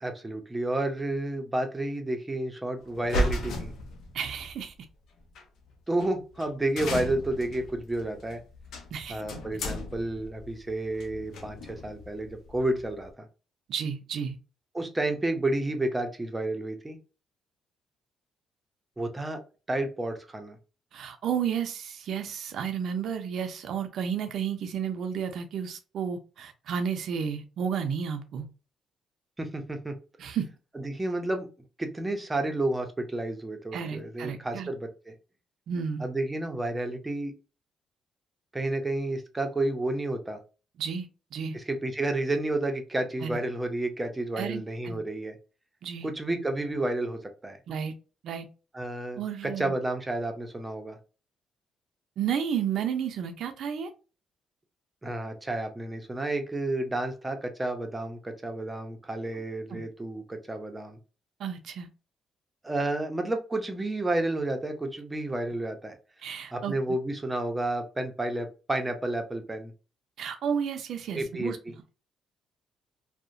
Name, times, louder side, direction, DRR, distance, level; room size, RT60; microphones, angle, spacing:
voice 1, 0.0-3.7 5.9-8.4 9.1-13.3 14.7-17.0 19.0-19.4 19.7-20.6 29.4-30.0 30.7-31.5 31.8-35.1 36.0-37.3 38.5-40.4 41.5-45.4 46.0-47.6 48.7-51.0 55.0-61.0 62.6-66.0 66.5-69.7 71.1-71.7, right 2 dB, 15° right, 0.6 m, -31 dB
sound 1, 2.9-4.5 5.4-5.5 6.0-6.1 6.3-6.5 6.8-13.1, left 1 dB, 75° left, 0.6 m, -35 dB
voice 2, 4.1-4.7 8.9-9.2 13.7-14.4 20.9-28.5 30.2-30.5 33.7-34.7 35.7-36.0 40.8-41.6 43.2-43.4 44.4-45.0 45.8-46.1 47.7-47.9 48.2-48.5 49.2-49.7 52.2-53.9 59.7-59.8 61.4-61.9 66.2-66.7 70.2-71.6, right 7 dB, 70° right, 0.4 m, -32 dB
2.8 x 2.1 x 2.5 m
cardioid pair, 90°, 0 cm